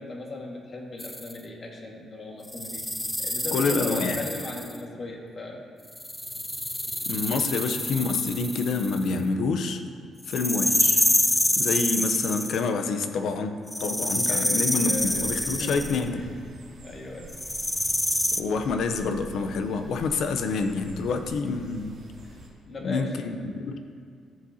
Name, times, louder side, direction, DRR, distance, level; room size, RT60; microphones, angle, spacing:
voice 1, 0.0-2.8 3.2-5.6 14.2-16.3 16.8-17.4 22.7-23.2, left 2 dB, 40° left, 0 dB, 1.7 m, -38 dB
sound 1, 1.0-1.3 2.5-4.8 5.9-9.1 10.3-12.7 13.7-16.0 17.3-18.4, left 1 dB, 10° left, 0.4 m, -27 dB
voice 2, 3.5-4.2 7.1-9.8 10.3-11.0 11.6-16.2 18.4-22.0 22.8-23.8, left 4 dB, 70° left, 7 dB, 0.7 m, -27 dB
sound 2, 14.9-22.5, right 1 dB, 55° right, 2.3 m, -45 dB
14.0 x 7.6 x 2.8 m, 2.3 s
cardioid pair, 90°, 0 cm